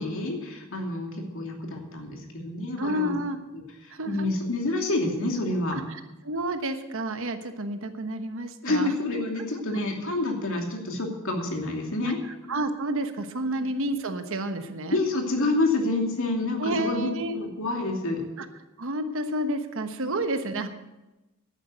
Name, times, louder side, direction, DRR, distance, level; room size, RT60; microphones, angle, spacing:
voice 1, 0.0-3.1 3.5-5.8 8.6-12.2 13.4-13.7 14.9-18.2 20.0-20.2, left 2 dB, 65° left, 1 dB, 2.7 m, -28 dB
voice 2, 2.8-3.4 3.9-4.3 5.7-8.9 9.4-9.5 12.5-15.0 16.6-17.4 18.4-18.5 18.8-20.7, right 1 dB, 65° right, 8 dB, 1.1 m, -30 dB
11.0 x 9.3 x 7.9 m, 1.0 s
head